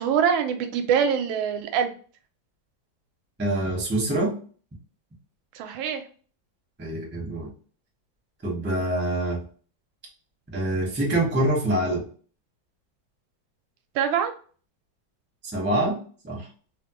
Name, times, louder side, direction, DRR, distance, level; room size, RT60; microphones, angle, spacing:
voice 1, 0.0-1.9 5.5-6.0 13.9-14.3, right 7 dB, 85° right, 7 dB, 1.4 m, -24 dB
voice 2, 3.4-4.4 6.8-7.5 8.4-9.4 10.5-12.0 15.5-16.0 16.2-16.5, right 1 dB, 10° right, -3 dB, 0.5 m, -25 dB
3.3 x 2.1 x 2.9 m, 0.42 s
omnidirectional pair, 2.2 m